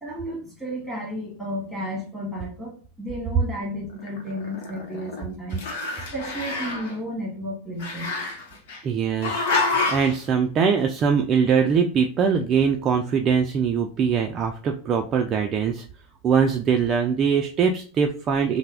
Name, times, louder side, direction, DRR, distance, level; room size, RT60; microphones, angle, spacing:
voice 1, 0.0-5.6 6.1-8.1, equal, ahead, -2 dB, 1.6 m, -33 dB
Growling, 4.0-5.2 5.5-6.9 7.8-8.8 9.2-10.2, left 3 dB, 70° left, 0.7 m, -27 dB
voice 2, 8.8-15.8 16.2-18.6, right 6 dB, 35° right, 3 dB, 0.3 m, -22 dB
3.2 x 2.0 x 3.3 m, 0.40 s
supercardioid pair, 125°, 0 cm